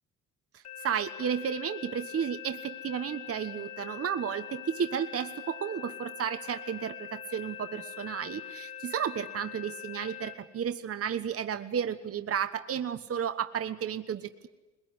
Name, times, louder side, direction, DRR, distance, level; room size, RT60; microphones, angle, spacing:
voice 1, 0.5-14.5, right 8 dB, 50° right, 8 dB, 1.3 m, -33 dB
sound 1, 0.6-10.3, left 9 dB, 55° left, 4.5 m, -43 dB
21.5 x 21.0 x 9.7 m, 1.1 s
cardioid pair, 90°, 30 cm